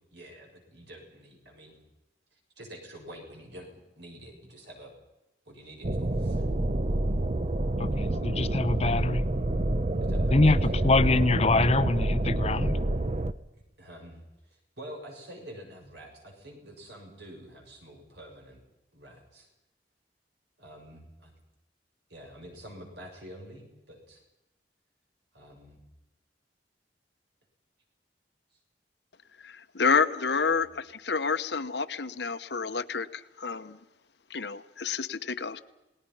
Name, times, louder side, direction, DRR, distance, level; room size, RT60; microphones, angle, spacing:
voice 1, 0.1-1.8 2.3-4.9 5.5-6.4 7.9-8.2 10.0-10.8 13.5-14.2 14.5-18.6 18.9-19.5 20.6-21.3 22.1-24.2 25.3-25.8 30.5-30.6, equal, 70° right, 1 dB, 7.0 m, -48 dB
sound 1, 5.8-13.3, right 1 dB, 40° right, 0.8 m, -27 dB
voice 2, 7.8-9.2 10.3-12.8, left 3 dB, 35° left, 13 dB, 0.7 m, -25 dB
voice 3, 29.4-33.8 34.3-35.6, left 5 dB, 70° left, 11 dB, 1.0 m, -29 dB
29.5 x 19.5 x 5.7 m, 0.98 s
head